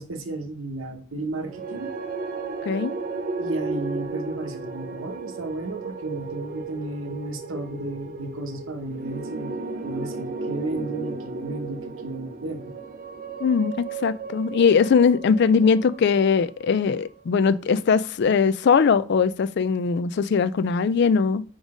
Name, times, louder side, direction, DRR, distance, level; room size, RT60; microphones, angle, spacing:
voice 1, 0.0-1.9 3.4-12.7, right 2 dB, 70° right, 1.0 m, -33 dB
sound 1, 1.4-17.7, right 3 dB, 40° right, 0.6 m, -35 dB
voice 2, 13.4-21.4, left 5 dB, 50° left, 0.3 m, -20 dB
5.1 x 3.9 x 4.9 m
head